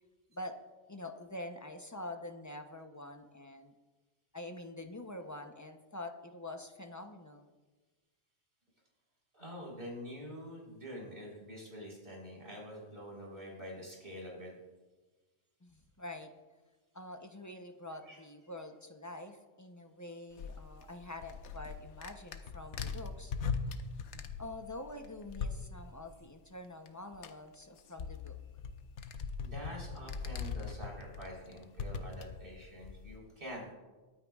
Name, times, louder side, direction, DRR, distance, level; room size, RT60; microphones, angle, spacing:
voice 1, 0.9-3.7 4.3-7.5 15.6-16.3 16.9-23.3 24.4-28.4, left 1 dB, 20° left, 5 dB, 0.6 m, -46 dB
voice 2, 9.3-14.5 18.1-18.2 29.4-33.7, equal, 50° right, -3 dB, 4.0 m, -46 dB
sound 1, 20.4-26.0 26.9-27.0 27.1-33.2, left 5 dB, 90° left, 1.0 m, -41 dB
22.0 x 9.1 x 2.4 m, 1.3 s
omnidirectional pair, 1.2 m